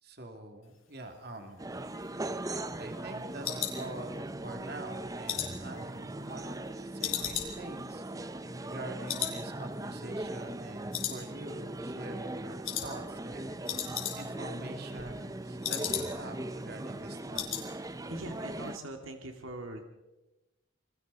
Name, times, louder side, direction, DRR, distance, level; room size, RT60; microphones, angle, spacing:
voice 1, 0.0-1.7 2.8-17.4, right 1 dB, 50° right, 4 dB, 2.6 m, -45 dB
sound 1, 1.6-18.8, right 1 dB, 15° right, 0.6 m, -39 dB
sound 2, 1.7-4.5 4.9-6.6 7.0-8.8 9.1-9.4 9.7-9.8 10.3-10.7 10.9-11.7 12.0-12.3 12.6-12.9 13.2-13.3 13.5-14.5 14.8-16.4 16.7-16.8 17.1-17.7 18.0-18.2 18.5-18.6, left 10 dB, 85° left, 4.4 m, -37 dB
voice 2, 18.1-19.8, right 1 dB, 80° right, 4 dB, 2.2 m, -41 dB
28.0 x 22.5 x 4.1 m, 1.0 s
head